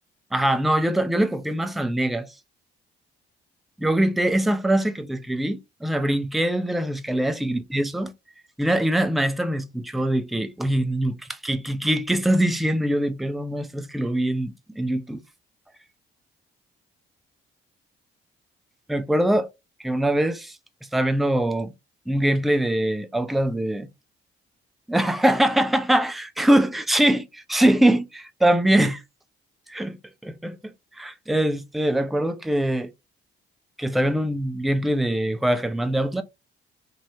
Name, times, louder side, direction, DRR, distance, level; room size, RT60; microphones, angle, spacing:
voice 1, 0.3-2.3 3.8-8.1 8.6-15.2 18.9-19.5 19.8-20.6 20.9-21.7 22.1-23.9 24.9-29.0 29.7-30.0 30.2-32.9 33.8-36.2, right 1 dB, ahead, 0.4 m, -23 dB
3.1 x 2.7 x 2.7 m
figure-of-eight pair, 40°, 29 cm